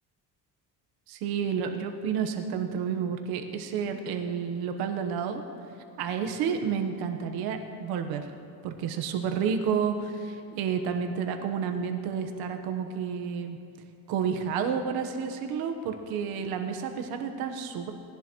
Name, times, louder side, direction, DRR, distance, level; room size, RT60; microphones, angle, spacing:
voice 1, 1.1-5.4 6.0-8.3 8.6-13.6 14.1-17.9, right 7 dB, 80° right, 5 dB, 1.2 m, -30 dB
19.5 x 11.0 x 3.1 m, 2.5 s
cardioid pair, 135°, 37 cm